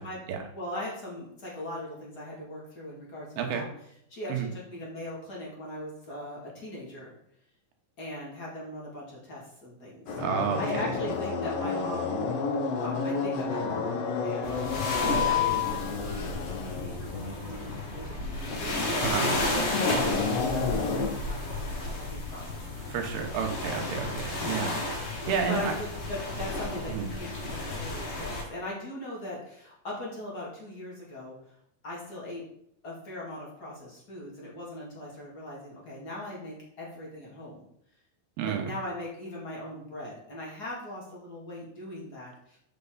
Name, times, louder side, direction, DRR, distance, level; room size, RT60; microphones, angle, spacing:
voice 1, 0.5-3.7 4.1-7.1 8.0-10.1 10.6-12.3 12.8-14.6 15.0-18.7 19.3-22.9 25.5-31.4 31.8-32.4 32.8-37.7 38.4-42.6, left 1 dB, 30° left, -5 dB, 2.3 m, -40 dB
voice 2, 3.4-3.7 4.3-4.5 10.2-10.6 19.0-19.3 22.9-24.7 25.0-25.8 26.9-27.1 38.4-38.7, right 7 dB, 80° right, 3 dB, 3.0 m, -30 dB
sound 1, 10.1-21.1, left 5 dB, 75° left, 1.4 m, -30 dB
sound 2, 14.4-28.4, left 2 dB, 60° left, 3.3 m, -33 dB
7.9 x 6.8 x 4.0 m, 0.73 s
omnidirectional pair, 4.6 m